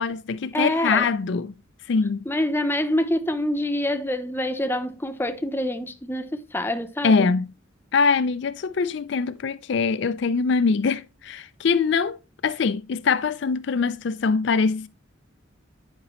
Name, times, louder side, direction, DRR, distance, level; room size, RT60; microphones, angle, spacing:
voice 1, 0.0-1.5 1.9-2.2 7.0-7.5 7.9-12.2 12.4-14.9, left 5 dB, 60° left, 0.4 m, -23 dB
voice 2, 0.5-1.1 2.3-7.3, left 1 dB, 10° left, 0.7 m, -26 dB
10.5 x 5.2 x 3.0 m
head